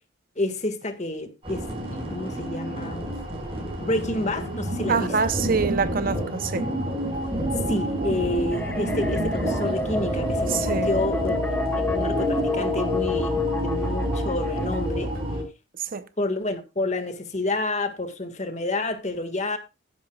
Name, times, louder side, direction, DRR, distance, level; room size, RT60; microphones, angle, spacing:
voice 1, 0.3-1.6 1.9-3.1 3.8-5.1 7.7-11.4 11.7-15.1 16.2-19.6, left 2 dB, 35° left, 1.7 m, -29 dB
sound 1, 1.4-15.4, equal, 30° right, 5.3 m, -28 dB
voice 2, 4.9-6.6 10.5-10.9 15.8-16.0, right 5 dB, 45° right, 0.7 m, -25 dB
sound 2, 8.5-14.9, left 2 dB, 10° left, 0.7 m, -31 dB
15.0 x 11.0 x 2.3 m
head